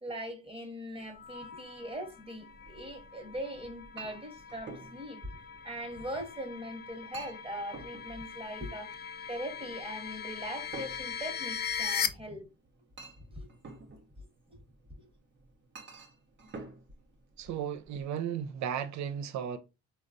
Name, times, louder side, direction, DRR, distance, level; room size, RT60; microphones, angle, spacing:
voice 1, 0.0-5.3 5.6-8.9 9.3-12.5 13.4-13.5 14.2-14.6 15.0-15.1, equal, 20° right, 1.1 m, -41 dB
sound 1, 1.1-12.1, left 7 dB, 35° left, 0.4 m, -40 dB
Chink clink, 2.5-18.0, right 4 dB, 40° right, 0.8 m, -51 dB
voice 2, 17.4-19.6, right 8 dB, 65° right, 0.5 m, -35 dB
3.9 x 2.3 x 2.5 m
cardioid pair, 90°, 30 cm